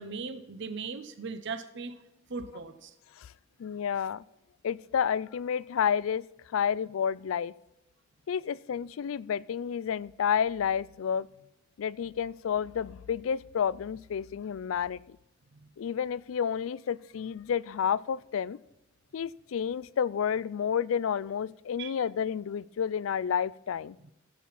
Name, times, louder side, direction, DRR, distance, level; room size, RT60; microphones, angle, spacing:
voice 1, 0.0-2.0 2.3-2.9 15.5-15.7 21.8-21.9, right 4 dB, 65° right, 10 dB, 0.7 m, -38 dB
voice 2, 3.6-4.2 4.6-6.2 6.5-7.5 8.3-11.3 11.8-15.2 15.8-18.6 19.1-24.0, left 7 dB, 85° left, 20 dB, 0.4 m, -30 dB
15.5 x 7.5 x 4.1 m, 0.90 s
head